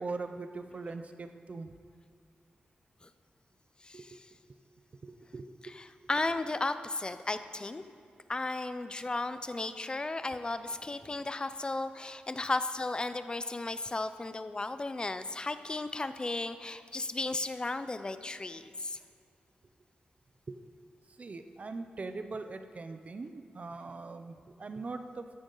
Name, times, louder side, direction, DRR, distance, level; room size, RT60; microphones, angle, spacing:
voice 1, 0.0-1.7 3.9-4.4 5.0-5.5 20.5-20.6 21.2-25.4, right 3 dB, 45° right, 8 dB, 0.5 m, -41 dB
voice 2, 3.8-4.3 5.6-7.8 8.3-19.0, left 2 dB, 25° left, 11 dB, 0.5 m, -35 dB
14.5 x 10.5 x 3.9 m, 2.3 s
wide cardioid pair, 105°, 3 cm